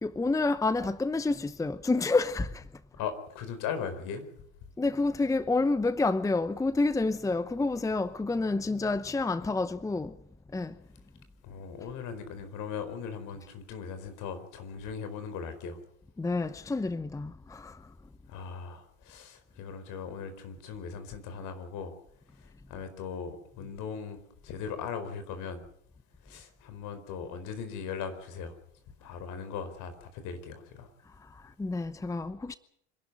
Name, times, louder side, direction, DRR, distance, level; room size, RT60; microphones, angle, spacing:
voice 1, 0.0-2.8 4.8-10.2 10.5-10.8 16.2-17.9 31.0-32.5, left 3 dB, 10° left, 0.8 m, -29 dB
voice 2, 3.0-4.3 11.4-15.8 18.3-21.9 22.4-25.6 26.2-28.5 29.0-30.9, left 6 dB, 60° left, 4.6 m, -39 dB
26.0 x 11.5 x 9.8 m
hypercardioid pair, 90°, 35 cm